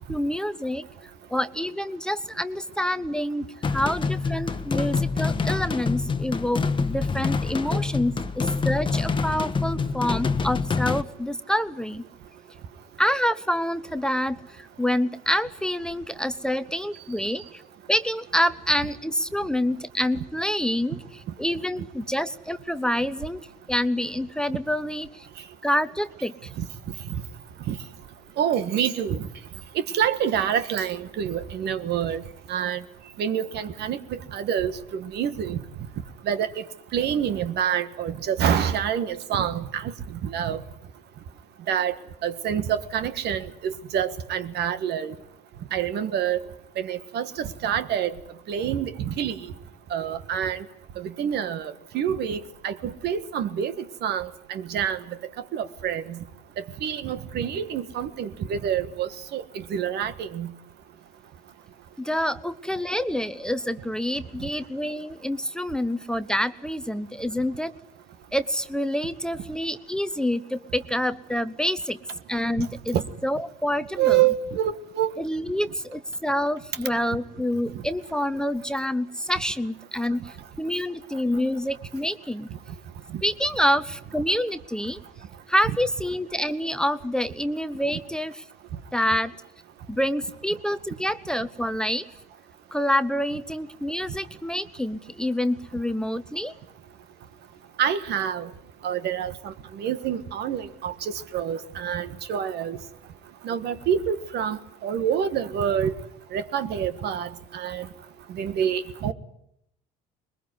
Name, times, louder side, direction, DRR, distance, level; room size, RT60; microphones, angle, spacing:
voice 1, 0.1-0.8 1.3-12.0 13.0-17.6 17.9-21.0 21.4-23.4 23.7-25.3 25.6-26.5 62.0-67.7 68.3-72.0 72.3-73.0 73.2-74.2 75.2-82.5 83.2-85.0 85.5-88.4 88.9-89.3 89.9-92.1 92.7-96.5, equal, 5° left, 11 dB, 0.9 m, -27 dB
sound 1, 3.6-11.0, left 4 dB, 25° left, 1.3 m, -26 dB
voice 2, 28.4-29.2 29.7-32.2 32.5-32.8 33.2-35.6 36.3-36.6 36.9-39.9 40.2-40.6 41.7-41.9 42.2-45.1 45.7-46.4 46.8-48.1 48.5-49.4 49.9-50.6 51.0-53.7 54.0-55.0 55.5-56.2 56.8-59.4 59.7-60.5 72.9-73.0 74.0-75.1 83.1-83.2 87.9-88.0 97.8-98.5 98.8-102.8 103.4-105.9 106.3-107.9 108.3-109.1, right 9 dB, 60° right, 12 dB, 1.6 m, -27 dB
21.5 x 21.0 x 9.6 m, 0.77 s
supercardioid pair, 95°, 19 cm